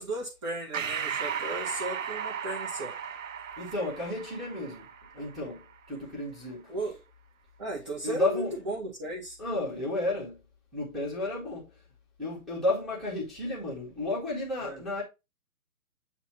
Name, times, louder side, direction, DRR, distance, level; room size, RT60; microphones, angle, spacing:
voice 1, 0.0-2.9 6.7-7.0 7.6-9.4 14.6-14.8, right 1 dB, 20° right, 0.9 m, -35 dB
Breathing, 0.7-5.6, right 7 dB, 60° right, 0.5 m, -35 dB
voice 2, 3.6-4.9 5.1-5.6 5.9-6.7 8.0-8.6 9.4-10.4 10.7-11.7 12.2-15.0, left 2 dB, ahead, 1.1 m, -32 dB
8.0 x 2.9 x 4.3 m
figure-of-eight pair, 140°, 45 cm